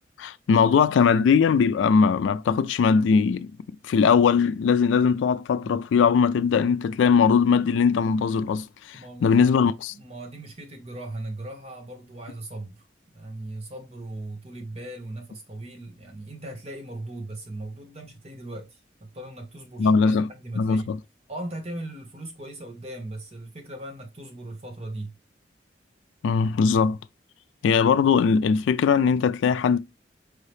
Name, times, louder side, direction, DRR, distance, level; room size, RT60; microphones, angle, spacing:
voice 1, 0.2-3.5 3.8-9.9 19.8-20.3 20.6-21.0 26.2-27.0 27.6-29.8, left 6 dB, 85° left, 0.3 m, -20 dB
voice 2, 8.9-12.8 13.1-20.9 21.3-25.1, right 1 dB, 35° right, 0.9 m, -38 dB
4.7 x 2.7 x 3.2 m
head